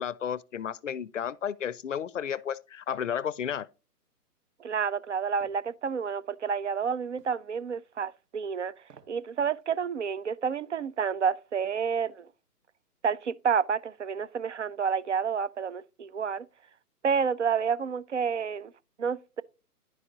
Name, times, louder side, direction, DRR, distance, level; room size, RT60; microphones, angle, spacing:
voice 1, 0.0-3.7, left 8 dB, 55° left, 0.5 m, -32 dB
voice 2, 4.6-8.7 9.1-12.3 13.0-16.5 17.0-18.7 19.0-19.4, right 6 dB, 50° right, 0.5 m, -29 dB
sound 1, 5.4-5.7 7.2-7.4 8.8-9.2 9.6-9.7, right 6 dB, 80° right, 1.1 m, -55 dB
11.0 x 4.8 x 3.8 m
figure-of-eight pair, 135°, 47 cm